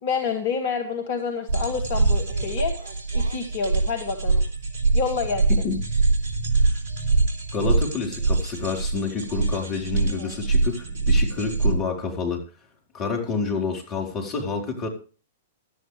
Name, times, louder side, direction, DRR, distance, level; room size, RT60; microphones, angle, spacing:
voice 1, 0.0-2.8 3.1-4.4 4.9-5.4, left 5 dB, 55° left, 6 dB, 2.1 m, -28 dB
sound 1, 1.5-11.7, right 3 dB, 55° right, 3.4 m, -23 dB
voice 2, 7.5-12.4 12.9-14.9, left 4 dB, 30° left, 2 dB, 4.2 m, -28 dB
17.0 x 12.5 x 3.4 m, 0.37 s
figure-of-eight pair, 105°, 0 cm